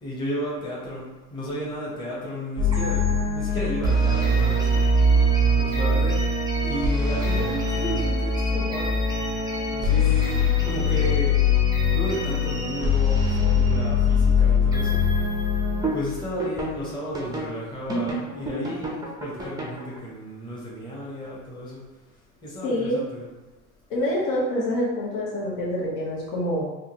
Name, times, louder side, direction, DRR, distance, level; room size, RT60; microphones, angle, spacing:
voice 1, 0.0-4.8 5.6-6.3 6.6-9.0 9.7-11.4 11.9-15.0 15.9-21.8 22.4-23.3, equal, 10° left, -7 dB, 0.9 m, -33 dB
sound 1, 2.6-16.8 17.1-17.5 17.9-20.0, left 2 dB, 10° right, 0.5 m, -22 dB
voice 2, 22.6-23.0 23.9-26.6, left 1 dB, 65° left, -5 dB, 1.3 m, -26 dB
3.6 x 2.2 x 2.8 m, 1.2 s
supercardioid pair, 105°, 48 cm